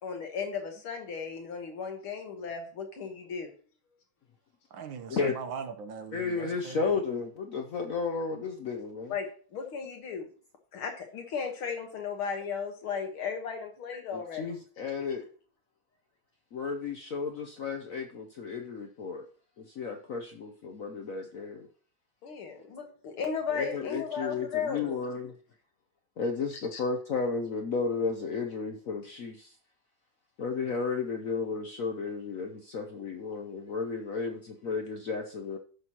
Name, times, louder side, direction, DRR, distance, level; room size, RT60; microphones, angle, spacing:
voice 1, 0.0-3.5 9.1-10.3 10.7-14.5 22.2-25.0 26.7-26.8, left 6 dB, 85° left, 2.3 m, -35 dB
voice 2, 4.7-7.0, right 6 dB, 70° right, 1.6 m, -40 dB
voice 3, 6.1-9.1 14.1-15.3 16.5-19.3 19.6-21.7 23.5-25.3 26.2-29.5 30.4-35.6, left 4 dB, 65° left, 0.8 m, -33 dB
15.0 x 6.2 x 2.9 m
omnidirectional pair, 2.3 m